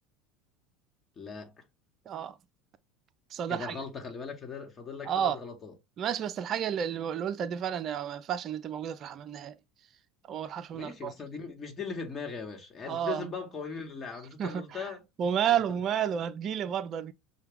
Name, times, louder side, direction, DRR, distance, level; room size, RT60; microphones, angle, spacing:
voice 1, 1.2-1.6 3.5-5.7 10.7-15.0, left 5 dB, 30° left, 1.3 m, -39 dB
voice 2, 2.1-2.4 3.3-3.8 5.0-5.4 6.0-9.6 10.3-11.1 12.8-13.3 14.4-14.8 15.2-17.1, right 9 dB, 45° right, 0.5 m, -31 dB
5.6 x 2.3 x 3.5 m
hypercardioid pair, 80°, 0 cm